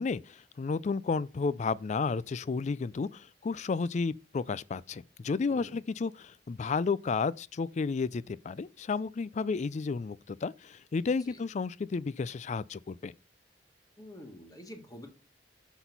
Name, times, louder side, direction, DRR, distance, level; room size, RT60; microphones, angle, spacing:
voice 1, 0.0-13.1, left 4 dB, 40° left, 0.4 m, -32 dB
voice 2, 14.0-15.1, left 1 dB, 20° left, 1.6 m, -47 dB
6.2 x 6.0 x 5.4 m
head